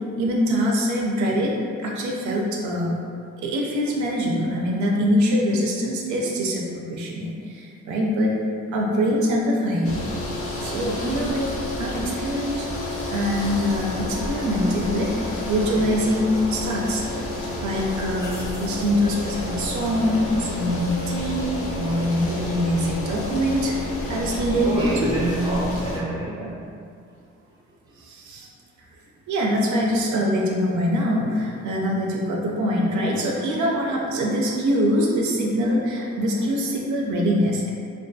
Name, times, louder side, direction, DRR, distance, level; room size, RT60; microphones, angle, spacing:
voice 1, 0.2-1.5 1.8-3.0 3.4-8.3 8.7-10.0 10.6-11.5 11.8-12.7 13.1-17.0 17.6-24.9 28.0-28.5 29.3-37.7, equal, 70° right, -2 dB, 0.5 m, -24 dB
sound 1, 9.8-26.0, left 1 dB, 50° left, 0.5 m, -30 dB
sound 2, 18.2-18.9 22.0-22.3, left 1 dB, 75° left, 0.8 m, -44 dB
voice 2, 24.6-26.6, right 1 dB, 15° right, -5 dB, 0.6 m, -26 dB
2.3 x 2.3 x 2.6 m, 2.3 s
cardioid pair, 90°, 30 cm